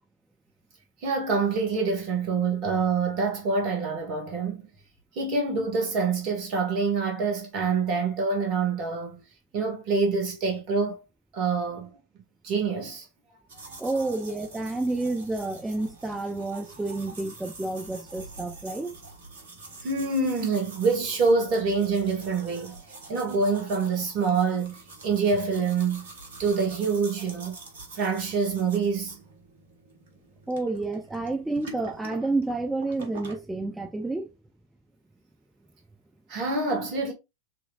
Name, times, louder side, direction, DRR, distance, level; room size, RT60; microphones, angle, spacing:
voice 1, 1.0-4.7 5.1-9.2 9.5-11.0 11.3-11.9 12.4-13.1 13.7-13.8 19.8-26.1 26.4-27.6 27.9-29.2 36.3-37.1, right 4 dB, 40° right, 1.6 m, -26 dB
sound 1, 13.5-33.4, right 3 dB, 60° right, 1.3 m, -46 dB
voice 2, 13.8-19.0 30.5-34.3, right 2 dB, 5° right, 0.4 m, -30 dB
4.5 x 3.2 x 2.4 m
figure-of-eight pair, 90°, 0 cm